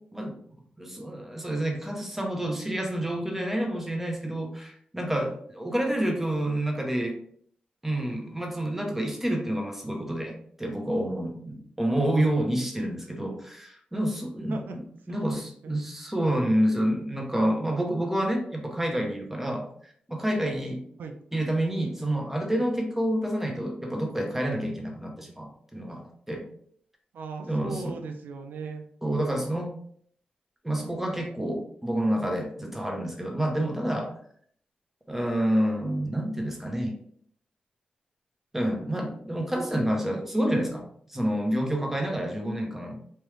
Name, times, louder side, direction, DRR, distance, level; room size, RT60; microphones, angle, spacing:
voice 1, 0.8-7.1 7.8-14.6 15.1-20.8 21.3-26.0 26.3-26.5 27.5-28.0 29.0-29.7 30.6-34.1 35.1-37.0 38.5-42.9, right 1 dB, 10° right, 1 dB, 0.9 m, -28 dB
voice 2, 15.1-15.7 21.0-21.1 27.1-28.8, right 4 dB, 85° right, 5 dB, 0.5 m, -38 dB
3.2 x 2.5 x 3.3 m, 0.63 s
cardioid pair, 75°, 3 cm